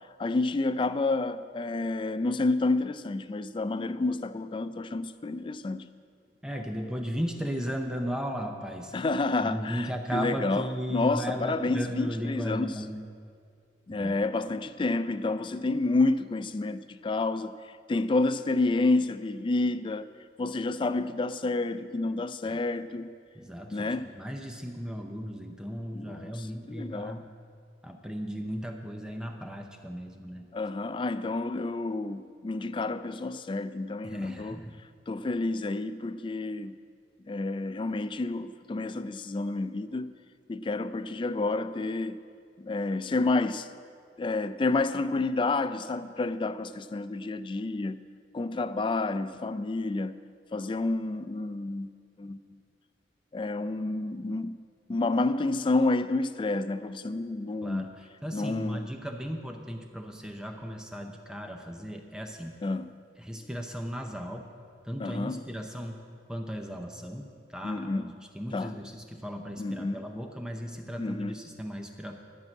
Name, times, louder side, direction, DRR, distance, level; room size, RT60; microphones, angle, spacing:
voice 1, 0.2-5.9 8.9-12.8 13.9-17.5 17.9-20.1 20.4-23.1 23.7-24.1 25.9-27.2 30.5-34.6 35.1-36.8 37.3-40.1 40.5-42.2 42.6-43.7 44.2-48.0 48.3-50.2 50.5-51.9 52.2-52.4 53.3-54.6 54.9-58.0 58.3-58.9 62.6-62.9 65.0-65.4 67.6-68.1 68.5-68.8 69.6-70.1 71.0-71.4, left 2 dB, 25° left, 0.3 m, -29 dB
voice 2, 6.4-8.9 9.4-13.1 13.9-14.2 22.5-22.6 23.3-27.3 27.8-30.5 34.0-34.8 57.6-57.9 58.2-62.6 63.2-64.5 64.8-66.0 66.3-67.3 67.5-72.2, equal, 5° right, 0.6 m, -36 dB
12.5 x 6.1 x 8.7 m
head